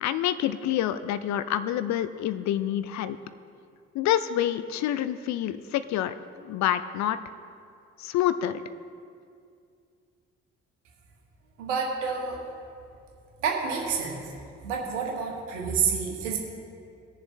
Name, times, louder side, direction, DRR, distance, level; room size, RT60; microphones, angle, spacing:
voice 1, 0.0-3.2 3.9-6.1 6.4-7.2 8.0-8.6, left 11 dB, 50° left, 13 dB, 0.5 m, -27 dB
voice 2, 11.6-12.4 13.4-14.2 14.6-16.4, right 6 dB, 80° right, 0 dB, 1.4 m, -28 dB
18.5 x 7.1 x 3.2 m, 2.3 s
figure-of-eight pair, 45°, 37 cm